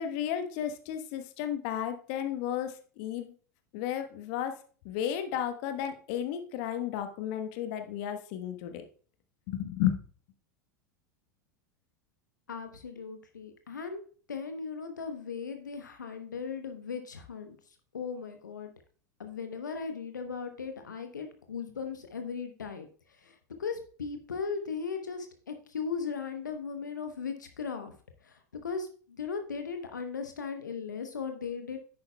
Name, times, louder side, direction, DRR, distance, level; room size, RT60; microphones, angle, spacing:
voice 1, 0.0-3.3 3.7-4.6 4.8-8.8 9.5-10.0, left 10 dB, 50° left, 7 dB, 1.1 m, -33 dB
voice 2, 12.5-14.0 14.3-17.5 17.9-18.7 19.2-22.9 23.2-27.9 28.2-31.8, left 5 dB, 80° left, 6 dB, 0.9 m, -37 dB
10.5 x 8.8 x 2.3 m, 0.42 s
figure-of-eight pair, 85°, 10 cm